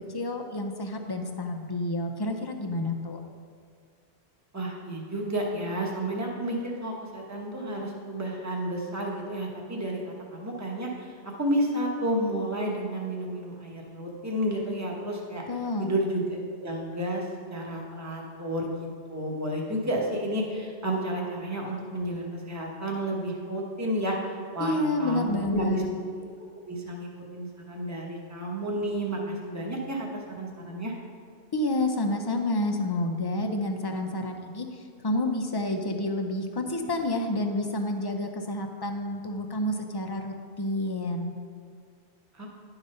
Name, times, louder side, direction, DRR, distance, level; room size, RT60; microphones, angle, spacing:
voice 1, 0.1-3.2 15.5-15.9 24.6-25.9 31.5-41.3, left 1 dB, 30° left, 3 dB, 0.4 m, -29 dB
voice 2, 4.5-15.4 15.8-24.2 24.5-26.0 26.7-30.9 42.3-42.5, right 1 dB, 15° right, -1 dB, 1.0 m, -31 dB
10.5 x 3.9 x 5.4 m, 2.2 s
omnidirectional pair, 1.1 m